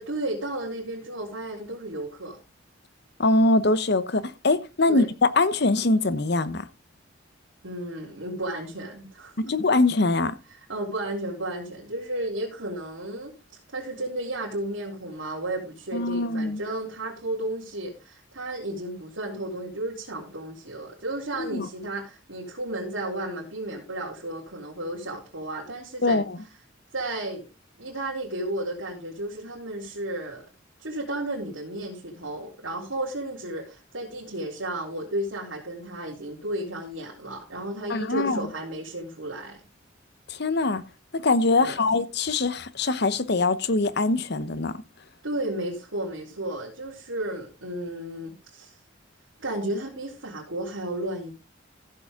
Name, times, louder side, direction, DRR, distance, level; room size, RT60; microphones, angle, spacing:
voice 1, 0.0-2.4 4.9-5.1 7.6-9.3 10.7-13.3 13.7-26.2 26.9-27.5 27.8-30.5 30.8-39.6 41.6-41.8 45.2-48.7 49.4-51.3, right 1 dB, 90° right, 3.4 m, -33 dB
voice 2, 3.2-6.7 9.4-10.3 15.9-16.6 21.4-21.7 26.0-26.4 37.9-38.5 40.3-40.8 41.1-44.8, left 2 dB, 60° left, 0.9 m, -23 dB
15.0 x 7.2 x 3.7 m
head